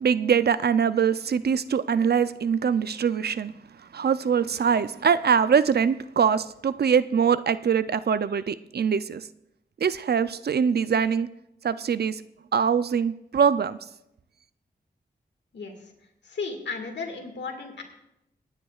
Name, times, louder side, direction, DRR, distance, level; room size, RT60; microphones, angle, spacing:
voice 1, 0.0-3.5 3.9-9.3 9.8-11.3 11.6-12.2 12.5-13.8, right 7 dB, 65° right, 14 dB, 0.5 m, -23 dB
voice 2, 15.5-15.9 16.2-17.8, left 4 dB, 90° left, 3 dB, 1.9 m, -34 dB
25.5 x 9.8 x 2.4 m, 0.84 s
cardioid pair, 55°, 18 cm